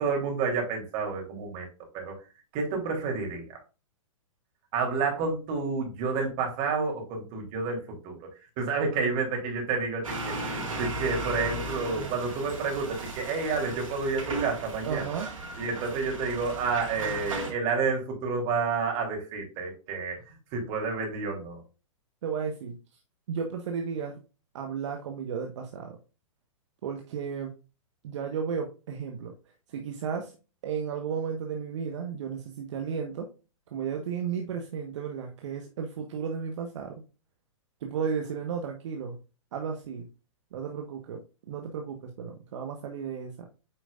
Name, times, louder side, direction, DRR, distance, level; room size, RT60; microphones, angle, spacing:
voice 1, 0.0-1.7 1.9-2.1 2.5-3.4 4.7-8.2 8.6-15.1 15.6-20.2 20.5-21.6, right 4 dB, 40° right, 1 dB, 3.4 m, -30 dB
sound 1, 10.0-17.5, right 2 dB, 90° right, 3.6 m, -36 dB
voice 2, 14.8-15.4 22.2-22.8 23.3-24.2 24.5-26.0 26.8-27.5 28.0-29.3 29.7-30.3 30.6-33.3 33.7-37.0 37.8-39.2 39.5-40.1 40.5-43.5, right 6 dB, 65° right, 3 dB, 1.3 m, -34 dB
8.9 x 5.2 x 2.5 m, 0.32 s
hypercardioid pair, 125°, 16 cm